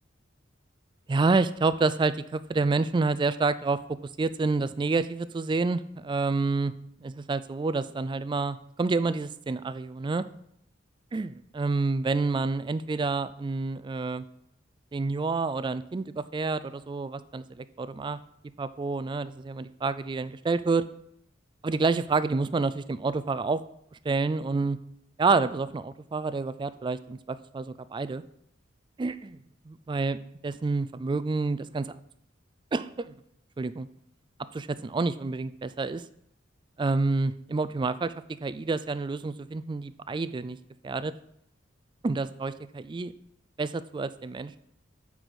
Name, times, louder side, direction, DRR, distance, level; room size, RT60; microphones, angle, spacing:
voice 1, 1.1-3.8 4.2-6.7 7.0-10.2 11.1-14.2 14.9-18.2 18.6-20.8 21.6-23.6 24.0-24.8 25.2-28.2 29.0-29.4 29.7-31.9 32.7-33.1 33.6-33.9 34.5-36.0 36.8-38.1 38.4-40.6 40.8-41.1 42.0-43.1 43.6-44.6, right 3 dB, 25° right, 14 dB, 0.3 m, -28 dB
9.0 x 4.8 x 6.2 m, 0.73 s
head